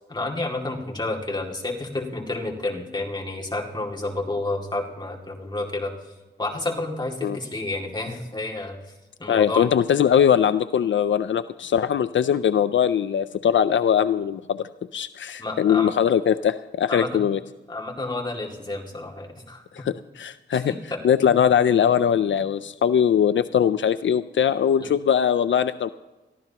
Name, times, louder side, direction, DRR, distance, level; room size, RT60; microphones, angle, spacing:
voice 1, 0.1-6.1 6.4-8.8 9.2-9.7 15.4-15.9 16.9-17.1 17.7-19.6 20.5-21.3 24.8-24.9, left 2 dB, 20° left, -1 dB, 2.3 m, -30 dB
voice 2, 9.3-14.6 14.9-17.4 19.7-20.7 21.0-25.9, left 8 dB, 80° left, 13 dB, 0.4 m, -21 dB
23.0 x 14.5 x 2.9 m, 1.1 s
wide cardioid pair, 100°, 19 cm